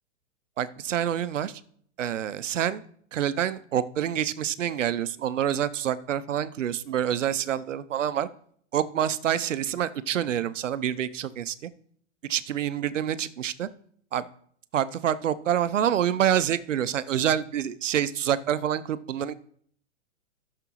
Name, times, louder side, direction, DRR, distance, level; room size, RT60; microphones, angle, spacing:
voice 1, 0.6-1.6 2.0-2.8 3.1-8.3 8.7-11.7 12.3-13.7 14.1-14.3 14.7-19.3, right 10 dB, 80° right, 16 dB, 0.7 m, -27 dB
13.5 x 6.7 x 3.1 m, 0.63 s
hypercardioid pair, 120°, 37 cm